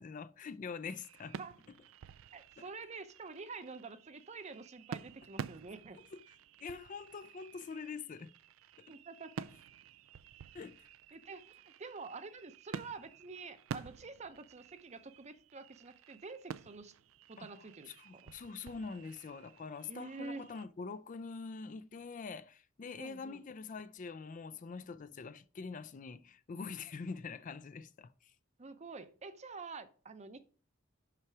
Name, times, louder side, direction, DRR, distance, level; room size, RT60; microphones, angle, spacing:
voice 1, 0.0-1.4 6.6-8.3 8.8-8.9 10.5-10.9 17.4-17.5 18.0-28.3, left 5 dB, 40° left, 0.4 m, -44 dB
sound 1, 0.8-20.7, right 7 dB, 80° right, 0.3 m, -50 dB
voice 2, 2.3-6.0 8.9-9.5 11.1-16.9 17.3-18.3 19.9-20.5 23.0-23.4 28.6-30.4, right 4 dB, 35° right, 0.6 m, -48 dB
5.9 x 5.8 x 4.6 m
head